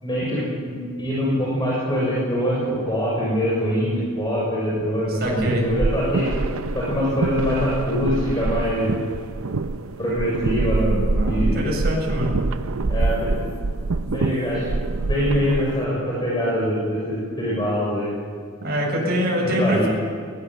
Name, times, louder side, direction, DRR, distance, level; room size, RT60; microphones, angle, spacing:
voice 1, 0.0-6.3 6.7-8.9 10.0-11.6 12.9-13.3 14.0-18.1 19.4-19.9, equal, 20° left, -6 dB, 6.6 m, -24 dB
voice 2, 5.1-5.7 11.1-12.4 18.6-19.9, equal, 50° right, -2 dB, 7.7 m, -24 dB
sound 1, 5.1-15.8, right 3 dB, 85° right, 0.7 m, -25 dB
23.0 x 20.5 x 7.6 m, 2.2 s
head